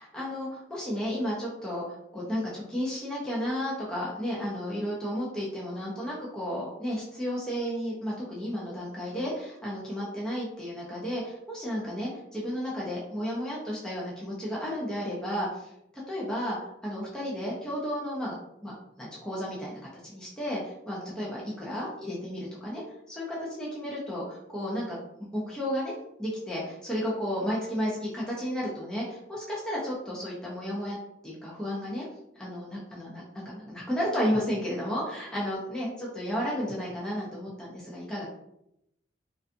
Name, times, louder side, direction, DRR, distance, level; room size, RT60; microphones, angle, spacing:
voice 1, 0.0-15.7 16.1-16.6 16.8-18.3 18.6-22.8 23.1-25.0 25.3-25.9 26.2-31.0 31.2-32.1 32.3-38.3, equal, 5° left, -6 dB, 0.5 m, -33 dB
2.4 x 2.3 x 2.5 m, 0.80 s
head